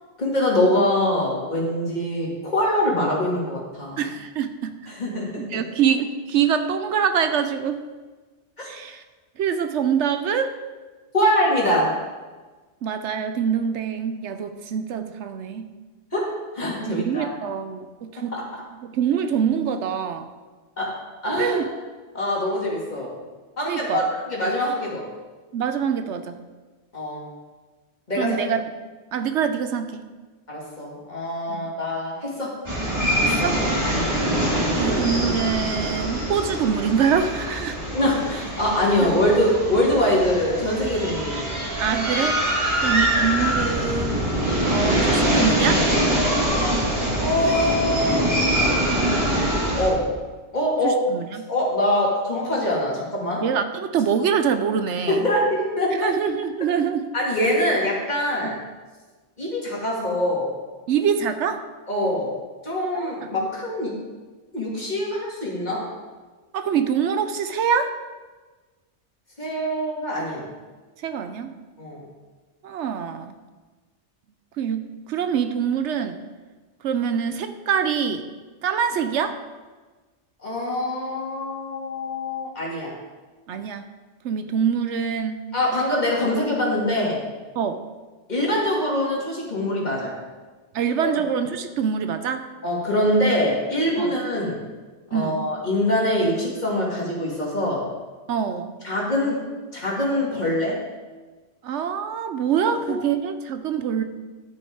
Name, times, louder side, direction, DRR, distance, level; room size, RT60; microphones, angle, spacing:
voice 1, 0.2-4.0 4.9-5.4 8.6-8.7 11.1-11.9 16.1-16.3 16.5-17.3 18.3-18.4 20.8-20.9 21.2-21.6 22.1-23.1 23.6-25.0 26.9-27.3 28.1-28.4 30.5-32.5 33.9-34.2 37.9-41.6 47.2-48.6 49.7-50.0 50.5-51.0 51.5-53.4 55.1-56.1 57.1-58.6 59.4-60.5 61.9-62.3 62.6-63.9 64.5-65.9 69.4-70.5 71.8-72.0 80.4-82.9 85.5-87.2 88.3-90.1 91.0-91.1 92.6-94.6 95.1-97.8 98.8-99.4 99.7-100.8, left 1 dB, 35° left, -5 dB, 2.5 m, -23 dB
voice 2, 4.0-4.7 5.4-7.8 8.6-9.0 9.4-10.5 12.8-15.7 16.9-18.4 18.8-20.3 21.4-21.7 23.7-24.0 25.5-26.4 28.2-28.6 29.1-30.0 31.5-31.7 33.2-33.7 34.8-37.8 41.8-42.4 42.8-44.2 44.7-45.8 50.8-51.5 53.4-55.2 55.9-57.1 58.4-58.6 60.9-61.6 62.9-63.3 66.5-68.0 71.0-71.5 72.6-73.3 74.6-76.2 76.8-78.3 78.6-79.4 83.5-83.8 84.2-85.4 87.6-87.8 90.7-92.5 94.0-94.1 95.1-95.4 98.3-98.7 101.6-104.0, right 7 dB, 75° right, 9 dB, 0.9 m, -25 dB
sound 1, 32.6-49.9, right 1 dB, 25° right, 2.2 m, -23 dB
12.0 x 6.4 x 4.6 m, 1.3 s
omnidirectional pair, 1.2 m